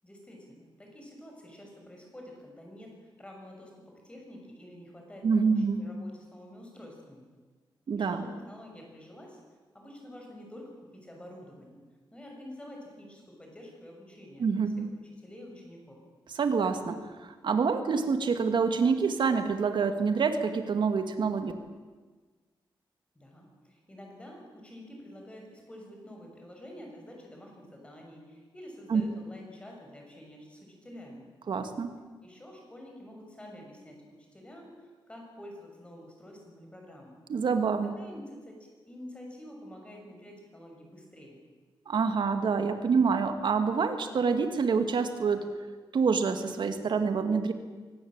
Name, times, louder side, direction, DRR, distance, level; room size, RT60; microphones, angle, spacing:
voice 1, 0.0-7.2 8.0-9.4 9.7-11.8 12.1-14.8 15.2-16.0 23.1-31.3 32.2-34.0 34.3-37.2 38.0-41.4, left 1 dB, 10° left, 1 dB, 6.5 m, -48 dB
voice 2, 5.2-5.8 7.9-8.2 14.4-14.9 16.3-21.5 28.9-29.0 31.5-31.9 37.3-37.9 41.9-45.5 45.9-47.5, right 5 dB, 65° right, 8 dB, 2.2 m, -27 dB
24.0 x 18.5 x 9.0 m, 1.4 s
wide cardioid pair, 160°, 9 cm